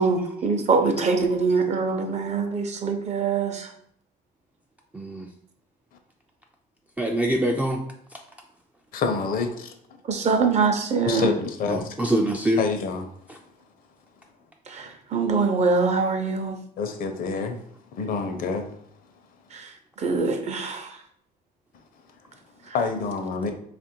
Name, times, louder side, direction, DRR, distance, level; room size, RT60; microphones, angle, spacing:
voice 1, 0.0-3.7 10.0-11.3 14.7-16.6 19.5-21.0 22.6-22.8, right 4 dB, 40° right, 5 dB, 0.6 m, -24 dB
voice 2, 4.9-5.3 7.0-7.8 8.1-8.2 11.7-12.6 13.3-13.4, right 1 dB, 10° right, 1 dB, 0.3 m, -24 dB
voice 3, 8.9-9.7 11.1-11.9 12.6-13.1 16.8-17.6 17.9-18.7 22.7-23.5, left 4 dB, 60° left, 6 dB, 0.6 m, -27 dB
3.1 x 2.5 x 4.4 m, 0.67 s
cardioid pair, 110°, 17 cm